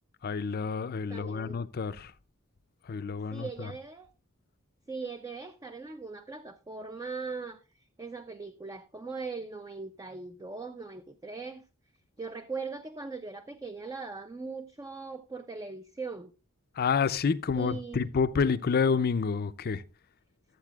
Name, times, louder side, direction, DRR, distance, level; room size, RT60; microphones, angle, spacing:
voice 1, 0.2-2.1 2.9-3.7 16.8-19.8, left 5 dB, 45° left, 0.5 m, -29 dB
voice 2, 1.1-1.6 3.3-4.1 4.9-7.6 8.0-11.7 12.2-16.3 17.5-18.1, right 4 dB, 15° right, 0.4 m, -40 dB
13.0 x 8.1 x 2.3 m
head